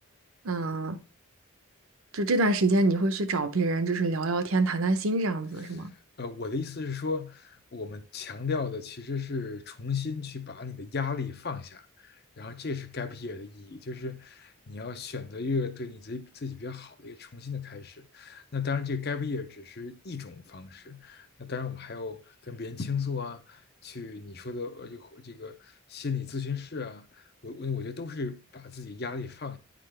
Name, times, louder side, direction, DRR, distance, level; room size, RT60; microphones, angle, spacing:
voice 1, 0.4-1.0 2.1-5.9, right 2 dB, 70° right, 0.7 m, -26 dB
voice 2, 5.7-29.6, left 5 dB, 45° left, 0.6 m, -35 dB
9.4 x 3.8 x 3.3 m
head